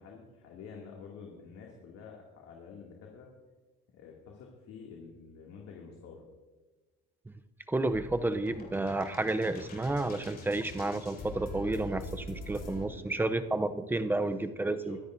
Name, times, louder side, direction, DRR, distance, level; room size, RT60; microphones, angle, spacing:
voice 1, 0.0-3.3 3.9-6.2 12.9-13.7 14.0-15.0, left 5 dB, 60° left, -2 dB, 2.3 m, -49 dB
voice 2, 7.7-15.0, right 2 dB, 5° right, 10 dB, 0.5 m, -31 dB
sound 1, 7.9-12.9, left 1 dB, 30° left, 3.0 m, -44 dB
23.5 x 10.5 x 2.6 m, 1.2 s
cardioid pair, 140°, 29 cm